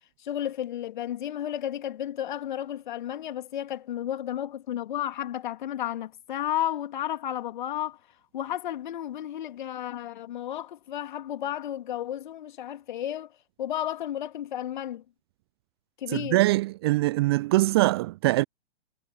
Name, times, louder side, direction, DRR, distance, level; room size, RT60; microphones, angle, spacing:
voice 1, 0.2-8.0 8.3-13.3 13.6-15.0 16.0-16.4, left 11 dB, 50° left, 2.4 m, -32 dB
voice 2, 16.1-18.4, right 19 dB, 25° right, 0.5 m, -23 dB
figure-of-eight pair, 115°, 32 cm